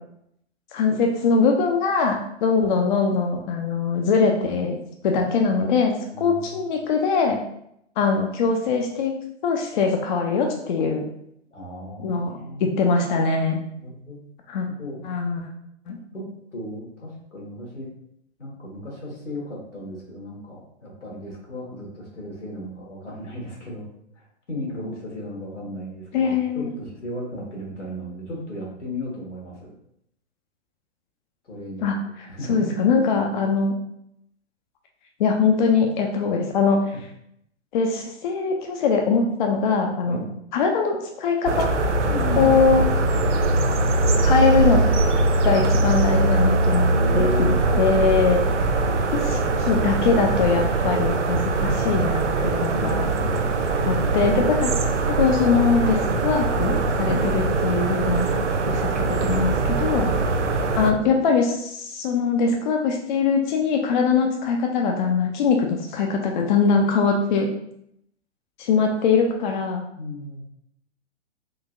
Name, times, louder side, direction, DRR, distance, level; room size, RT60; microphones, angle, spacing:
voice 1, 0.7-4.8 5.0-7.4 8.0-9.2 9.4-11.1 12.0-12.3 12.6-13.6 14.5-14.7 15.0-15.5 15.9-16.0 26.1-26.7 31.8-33.7 35.2-36.8 37.7-40.2 40.5-41.7 42.4-42.8 44.2-44.8 45.4-48.4 49.1-53.1 53.8-54.7 55.1-58.3 58.7-58.9 59.2-60.1 60.8-67.5 68.6-69.8, left 5 dB, 45° left, 2 dB, 0.4 m, -22 dB
voice 2, 6.1-6.6 11.5-12.7 13.8-14.2 14.7-15.0 16.1-17.9 18.4-23.9 24.5-29.7 31.4-32.7 36.9-37.0 40.1-40.3 42.1-42.6 46.9-48.3 52.7-53.5 57.0-57.2 60.0-60.2 70.0-70.4, equal, 85° left, -2 dB, 1.3 m, -34 dB
sound 1, 41.5-60.9, right 3 dB, 85° right, 0.5 m, -22 dB
3.7 x 2.7 x 2.5 m, 0.75 s
figure-of-eight pair, 115°, 35 cm